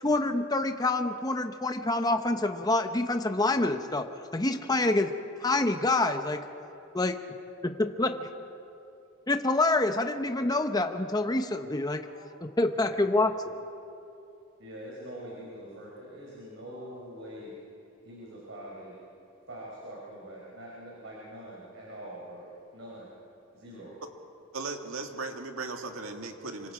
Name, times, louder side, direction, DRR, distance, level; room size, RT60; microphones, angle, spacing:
voice 1, 0.0-4.0 4.3-5.1 5.4-6.5 6.9-7.2 7.6-8.1 9.3-12.0 12.4-13.3, left 2 dB, 20° left, 7 dB, 0.8 m, -26 dB
voice 2, 12.0-12.3 12.7-13.2 14.6-17.6 18.0-19.0 19.5-22.5 22.7-23.1 23.5-23.9, equal, 60° right, -4 dB, 4.6 m, -44 dB
voice 3, 24.5-26.7, right 3 dB, 85° right, 4 dB, 1.9 m, -37 dB
26.0 x 25.0 x 4.9 m, 2.6 s
head